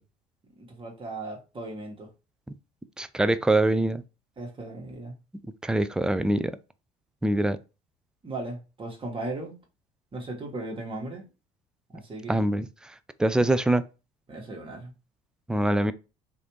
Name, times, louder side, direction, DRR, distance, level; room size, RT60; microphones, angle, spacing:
voice 1, 0.6-2.1 4.4-5.1 8.2-9.5 10.1-11.3 11.9-12.4 14.3-14.9, right 2 dB, 30° right, 1.4 m, -37 dB
voice 2, 3.0-4.0 5.6-6.6 7.2-7.6 12.3-12.7 13.2-13.8 15.5-15.9, right 1 dB, 5° right, 0.3 m, -23 dB
3.2 x 2.6 x 3.0 m
hypercardioid pair, 65°, 18 cm